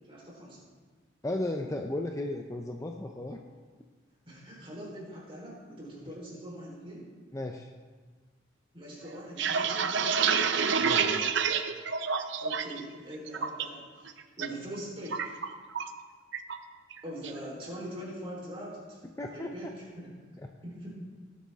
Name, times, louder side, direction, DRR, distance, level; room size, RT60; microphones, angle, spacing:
voice 1, 0.1-0.6 4.3-7.1 8.7-10.5 12.4-15.4 17.0-19.0 19.3-20.1 20.6-21.0, equal, 25° right, -4 dB, 3.8 m, -42 dB
voice 2, 1.2-3.4 7.3-7.7 10.8-11.3 19.2-19.7 20.4-20.5, left 1 dB, 15° left, 3 dB, 0.5 m, -35 dB
sound 1, 9.1-12.8 13.1-13.6 14.0-14.5 14.7-16.0 16.3-16.6 16.9-17.4, right 6 dB, 60° right, 0.6 m, -28 dB
19.0 x 8.4 x 3.6 m, 1.5 s
head